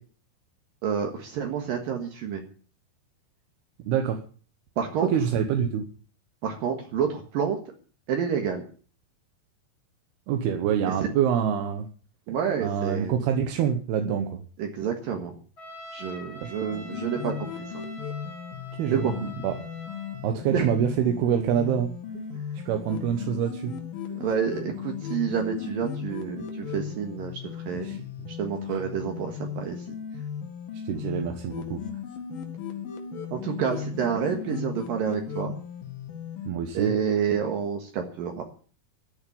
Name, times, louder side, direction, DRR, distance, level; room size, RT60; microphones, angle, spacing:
voice 1, 0.8-2.4 4.8-5.1 6.4-7.6 8.1-8.6 10.9-11.0 12.3-13.1 14.6-15.3 15.9-17.7 18.9-19.3 20.5-20.7 22.3-22.4 24.1-27.9 28.4-29.8 33.3-35.5 36.7-38.4, right 7 dB, 65° right, 3 dB, 3.2 m, -29 dB
voice 2, 3.9-4.2 5.0-5.9 10.3-11.9 12.6-14.4 16.4-16.5 18.8-19.1 19.4-19.6 20.2-21.9 22.5-23.7 27.8-28.0 30.8-31.8 36.5-37.0, right 8 dB, 80° right, 5 dB, 3.2 m, -26 dB
Trumpet, 15.6-20.3, equal, 25° left, 3.4 m, -44 dB
sound 1, 16.7-36.5, left 7 dB, 65° left, 3.6 m, -36 dB
14.0 x 9.5 x 8.6 m, 0.42 s
omnidirectional pair, 4.5 m